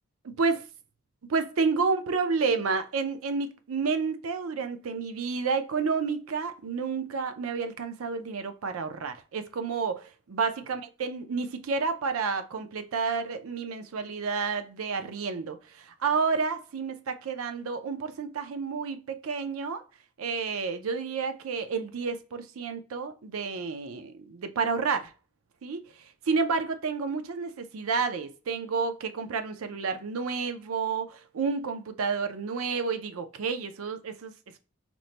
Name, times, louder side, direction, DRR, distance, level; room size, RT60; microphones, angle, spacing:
voice 1, 0.2-0.7 1.3-19.8 20.2-25.1 25.6-34.3, right 5 dB, 90° right, 0.5 m, -30 dB
3.0 x 2.1 x 3.9 m
head